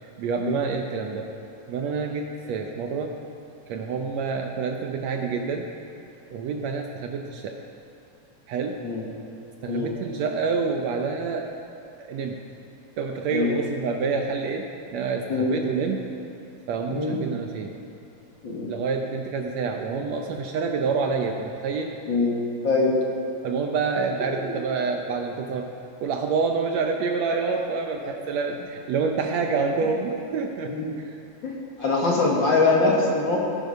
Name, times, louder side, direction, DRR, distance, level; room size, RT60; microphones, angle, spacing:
voice 1, 0.2-1.3 1.7-3.1 3.7-5.7 6.3-7.6 8.5-8.8 9.6-11.5 12.0-12.4 13.0-16.1 16.7-17.7 18.7-21.9 23.4-25.7 26.0-31.2, right 5 dB, 75° right, 3 dB, 1.7 m, -27 dB
voice 2, 22.6-22.9 28.0-28.1 30.7-30.9 31.4-33.5, left 3 dB, 45° left, -3 dB, 1.9 m, -23 dB
18.5 x 9.3 x 5.4 m, 2.8 s
omnidirectional pair, 3.7 m